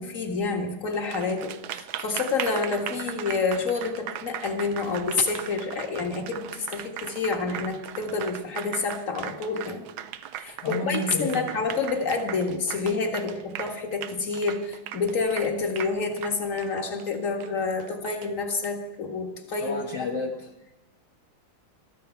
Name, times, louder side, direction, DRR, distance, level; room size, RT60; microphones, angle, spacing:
voice 1, 0.0-9.8 10.4-20.1, left 4 dB, 40° left, 3 dB, 2.1 m, -28 dB
Applause, 0.9-18.7, right 11 dB, 85° right, 1.6 m, -38 dB
voice 2, 10.6-11.6 19.6-20.5, left 3 dB, 60° left, 0 dB, 1.7 m, -31 dB
22.0 x 14.0 x 4.5 m, 0.99 s
omnidirectional pair, 2.2 m